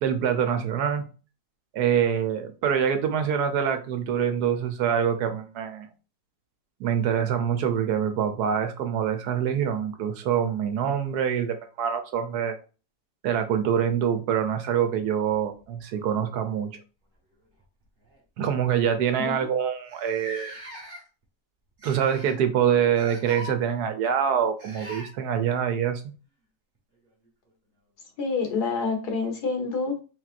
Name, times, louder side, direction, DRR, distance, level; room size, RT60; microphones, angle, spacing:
voice 1, 0.0-1.0 1.7-5.9 6.8-12.6 13.2-16.8 18.4-20.5 21.8-26.0, right 8 dB, 75° right, 7 dB, 1.3 m, -25 dB
sound 1, 15.3-16.4 17.5-17.6 18.0-18.2 18.9-19.0 19.2-19.3 19.9-21.2 21.8-22.4 22.9-23.5 24.6-25.1 27.2-27.3 28.4-28.5, equal, 35° right, 1.5 m, -41 dB
voice 2, 28.2-30.0, left 4 dB, 75° left, 3 dB, 1.7 m, -27 dB
4.4 x 4.0 x 2.5 m, 0.34 s
omnidirectional pair, 1.7 m